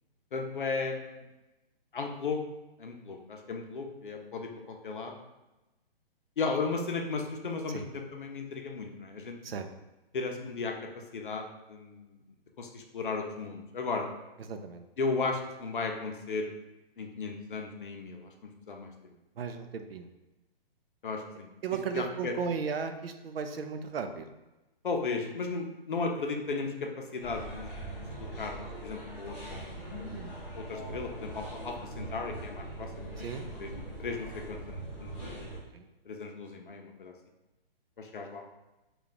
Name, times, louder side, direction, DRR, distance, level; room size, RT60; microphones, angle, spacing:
voice 1, 0.3-1.2 1.9-2.4 2.8-5.2 6.4-9.4 10.1-10.8 11.1-12.2 12.6-14.1 15.0-16.5 17.0-18.3 18.7-19.1 21.0-21.5 21.9-22.3 24.8-27.7 28.1-29.7 30.6-33.7 34.0-35.3 36.1-37.1 38.0-38.4, left 4 dB, 60° left, 3 dB, 0.6 m, -35 dB
voice 2, 14.5-14.8 19.4-20.1 21.6-24.3 30.1-30.4 33.2-33.5 35.7-35.8, right 6 dB, 75° right, 7 dB, 0.5 m, -35 dB
sound 1, 27.2-35.6, right 1 dB, 5° left, 1.0 m, -41 dB
3.3 x 2.3 x 3.9 m, 1.0 s
hypercardioid pair, 180°, 30 cm